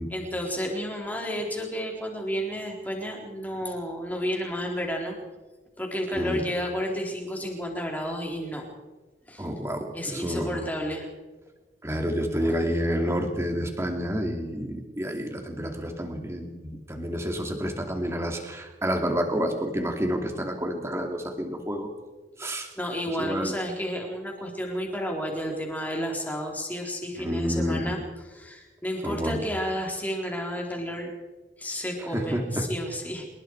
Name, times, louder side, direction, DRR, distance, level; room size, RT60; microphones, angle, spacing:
voice 1, 0.1-5.2 5.8-8.7 9.3-9.5 9.9-11.1 12.4-12.7 13.0-13.1 22.8-28.0 28.3-31.1 31.6-33.3, equal, 10° left, 0 dB, 3.9 m, -31 dB
voice 2, 9.4-10.6 11.8-21.9 22.4-22.7 23.2-23.5 27.2-27.9 29.0-29.4 32.1-32.7, equal, 15° right, 3 dB, 2.7 m, -29 dB
25.5 x 21.0 x 4.8 m, 1.3 s
head